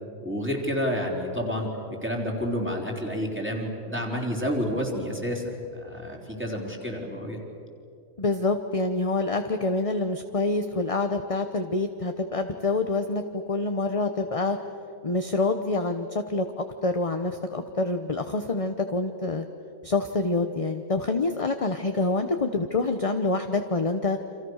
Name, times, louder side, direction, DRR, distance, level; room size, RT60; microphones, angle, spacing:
voice 1, 0.2-1.7 2.0-7.4, equal, 5° right, -1 dB, 4.1 m, -29 dB
voice 2, 8.2-13.2 13.5-14.6 15.0-19.5 19.8-24.2, left 3 dB, 25° left, 6 dB, 0.9 m, -26 dB
29.5 x 27.0 x 6.5 m, 2.6 s
omnidirectional pair, 1.6 m